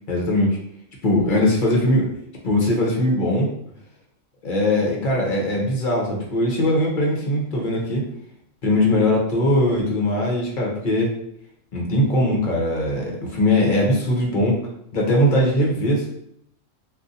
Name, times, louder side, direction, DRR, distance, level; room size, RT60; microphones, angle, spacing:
voice 1, 0.1-0.6 1.0-2.1 2.4-3.5 4.4-8.0 8.6-11.1 11.7-14.6 14.9-16.1, left 1 dB, 45° left, -1 dB, 0.8 m, -20 dB
2.5 x 2.4 x 3.9 m, 0.73 s
omnidirectional pair, 1.3 m